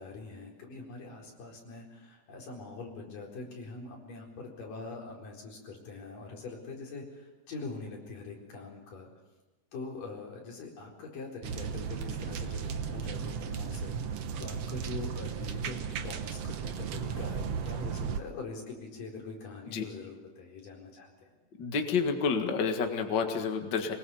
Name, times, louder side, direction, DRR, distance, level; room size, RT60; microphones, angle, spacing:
voice 1, 0.0-9.1 9.7-21.3, left 3 dB, 90° left, -1 dB, 6.0 m, -43 dB
sound 1, 11.4-18.2, right 7 dB, 60° right, 1.9 m, -35 dB
voice 2, 21.6-23.9, left 5 dB, 40° left, 5 dB, 2.0 m, -29 dB
23.5 x 21.0 x 7.1 m, 1.1 s
omnidirectional pair, 3.7 m